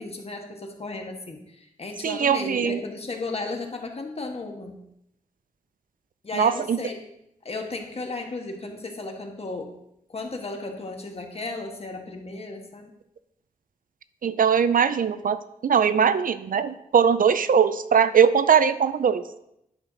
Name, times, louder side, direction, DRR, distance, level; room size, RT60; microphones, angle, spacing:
voice 1, 0.0-4.8 6.2-7.0 7.4-9.7 10.1-12.9, left 3 dB, 40° left, 3 dB, 1.3 m, -34 dB
voice 2, 2.0-2.8 6.3-6.8 14.2-15.4 15.6-19.2, right 7 dB, 65° right, 13 dB, 0.5 m, -20 dB
10.5 x 6.5 x 3.9 m, 0.80 s
wide cardioid pair, 135°, 15 cm